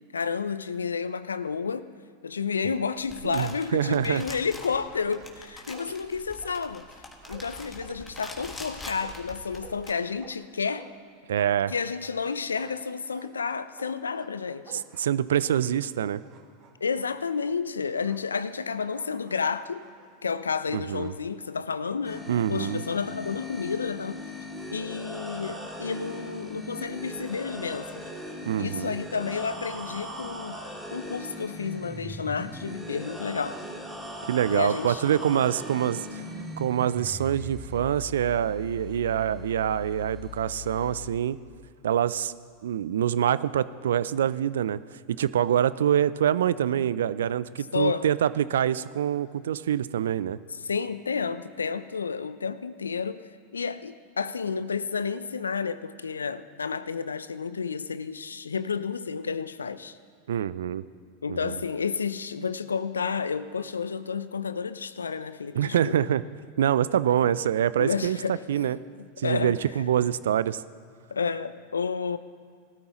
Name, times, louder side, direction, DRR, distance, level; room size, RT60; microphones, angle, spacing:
voice 1, 0.1-1.9 2.2-6.9 7.3-10.9 11.7-14.8 16.8-19.8 20.2-24.2 24.7-28.0 28.6-33.6 34.5-35.0 47.7-48.0 50.6-53.2 53.5-60.0 61.2-66.1 67.8-68.4 69.0-69.6 71.1-72.2, left 5 dB, 85° left, 14 dB, 0.5 m, -31 dB
sound 1, 3.0-9.9, left 2 dB, 15° left, 1.7 m, -44 dB
voice 2, 3.2-4.2 11.3-11.7 14.7-16.2 20.7-21.1 22.3-22.8 28.4-28.9 34.3-36.2 36.6-41.4 41.8-42.3 42.6-44.8 45.1-50.4 60.3-60.8 61.3-61.6 65.5-66.2 66.6-68.2 68.5-68.8 69.2-70.6, right 10 dB, 70° right, 17 dB, 0.3 m, -25 dB
sound 2, 4.3-4.6 4.9-6.1 6.4-12.2 12.6-16.0 16.2-17.1 18.0-18.3 18.9-21.2 21.8-23.6, right 7 dB, 45° right, 1.3 m, -52 dB
sound 3, 22.0-41.1, left 1 dB, 5° right, 2.6 m, -39 dB
18.5 x 13.0 x 3.0 m, 2.1 s
hypercardioid pair, 90°, 0 cm